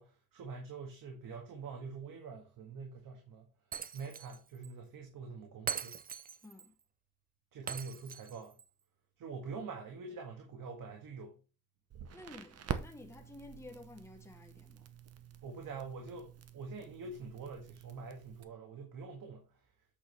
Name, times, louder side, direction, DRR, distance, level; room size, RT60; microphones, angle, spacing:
voice 1, 0.0-3.5 3.9-6.0 7.5-8.6 9.2-11.4 15.4-19.7, right 4 dB, 75° right, 1.8 m, -45 dB
Shatter, 3.7-4.4 4.6-4.7 5.7-6.7 7.7-8.6, right 7 dB, 25° right, 0.4 m, -41 dB
voice 2, 6.4-6.7 12.1-14.9, left 2 dB, 10° left, 1.2 m, -52 dB
Crackle, 11.9-18.4, right 8 dB, 45° right, 0.8 m, -46 dB
8.5 x 6.3 x 3.4 m
wide cardioid pair, 165°, 34 cm